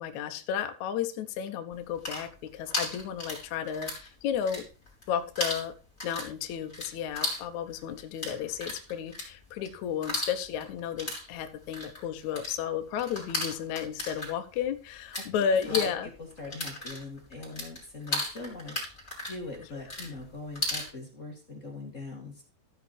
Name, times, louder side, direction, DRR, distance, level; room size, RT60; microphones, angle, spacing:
voice 1, 0.0-4.6 5.1-5.7 6.0-16.1 19.6-19.7, left 8 dB, 75° left, 7 dB, 1.7 m, -33 dB
sound 1, 1.8-4.1 4.3-5.1 5.3-15.3 15.5-20.9, left 2 dB, 10° left, 4.5 m, -35 dB
voice 2, 16.4-18.8 19.2-22.4, left 2 dB, 30° left, 0 dB, 1.5 m, -41 dB
15.0 x 5.9 x 4.3 m, 0.32 s
omnidirectional pair, 4.7 m